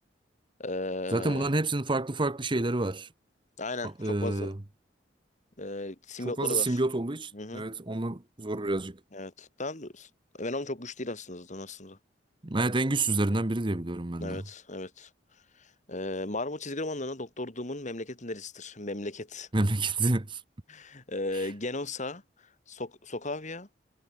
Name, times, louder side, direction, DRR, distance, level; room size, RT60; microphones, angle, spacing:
voice 1, 0.6-1.5 3.6-4.5 5.6-6.8 7.3-7.6 9.1-10.1 10.3-12.0 14.2-15.1 15.6-19.5 20.7-22.2 22.7-23.7, left 2 dB, 40° left, 3.1 m, -36 dB
voice 2, 1.1-3.1 3.8-4.6 6.2-9.0 12.4-14.4 19.5-20.4 21.3-21.5, right 2 dB, 25° right, 1.1 m, -28 dB
head